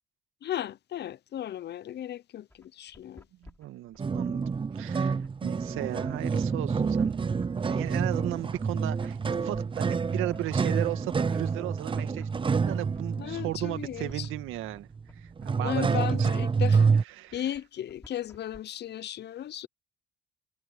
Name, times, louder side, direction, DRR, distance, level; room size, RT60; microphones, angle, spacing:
voice 1, 0.4-3.3 13.2-14.3 15.6-16.9 17.3-19.7, left 11 dB, 55° left, 0.8 m, -35 dB
sound 1, 2.5-18.6, left 1 dB, 10° left, 4.2 m, -55 dB
voice 2, 3.4-4.4 4.8-7.3 7.6-14.9 15.2-16.0 17.2-17.4, right 16 dB, 80° right, 1.9 m, -36 dB
sound 2, 4.0-17.0, right 5 dB, 25° right, 0.6 m, -28 dB
supercardioid pair, 75°, 21 cm